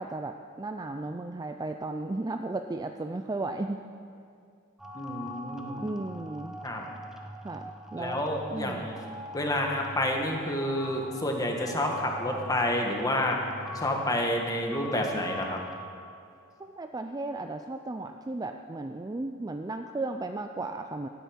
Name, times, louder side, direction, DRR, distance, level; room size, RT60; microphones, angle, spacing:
voice 1, 0.0-3.8 5.8-6.5 7.4-8.9 16.6-21.1, right 2 dB, 20° right, 6 dB, 0.4 m, -35 dB
sound 1, 4.8-15.8, left 1 dB, ahead, 1.0 m, -43 dB
voice 2, 4.9-5.9 6.6-6.8 7.9-9.0 9.3-13.4 13.7-15.6, left 1 dB, 15° left, 1 dB, 1.6 m, -29 dB
13.5 x 9.2 x 8.8 m, 2.3 s
head